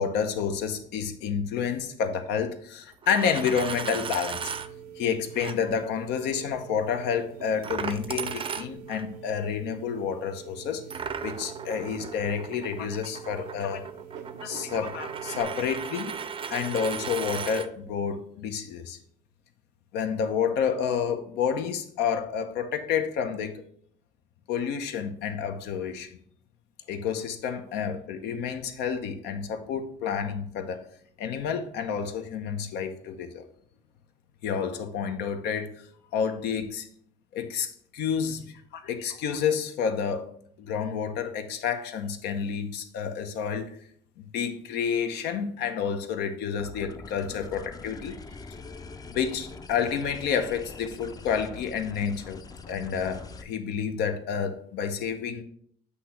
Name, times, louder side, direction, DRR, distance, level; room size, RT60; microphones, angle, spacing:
voice 1, 0.0-4.5 5.0-10.8 11.2-13.8 14.4-16.2 16.5-19.0 19.9-23.6 24.5-26.2 26.9-30.8 31.2-33.4 34.4-35.7 36.1-36.9 37.3-40.3 40.6-43.8 44.2-48.2 49.1-52.4 52.7-55.4, left 7 dB, 85° left, 7 dB, 0.8 m, -29 dB
Coin (dropping), 2.9-4.7 5.4-5.6 7.6-9.1 10.9-17.7, right 6 dB, 30° right, 0.5 m, -36 dB
sound 1, 3.7-15.4, right 8 dB, 85° right, 0.7 m, -45 dB
sound 2, 46.6-53.4, left 4 dB, 20° left, 0.5 m, -43 dB
8.1 x 2.8 x 5.7 m, 0.63 s
cardioid pair, 110°, 17 cm